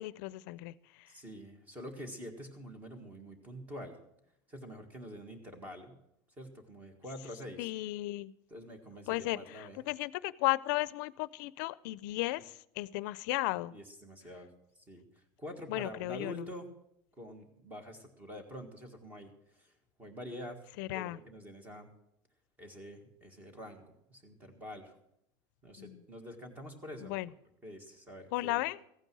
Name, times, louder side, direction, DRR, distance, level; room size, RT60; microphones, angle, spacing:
voice 1, 0.0-1.1 7.6-8.3 9.1-13.7 15.7-16.4 20.8-21.2 25.8-26.0 27.0-27.3 28.3-28.8, left 19 dB, 80° left, 18 dB, 0.4 m, -35 dB
voice 2, 1.1-4.0 4.5-5.9 6.4-7.7 8.5-9.8 13.7-14.5 14.8-16.7 17.2-20.6 20.9-21.9 22.6-25.0 25.6-27.1 27.6-28.6, equal, 15° right, 6 dB, 1.7 m, -46 dB
15.0 x 9.2 x 6.2 m, 0.78 s
cardioid pair, 170°, 10 cm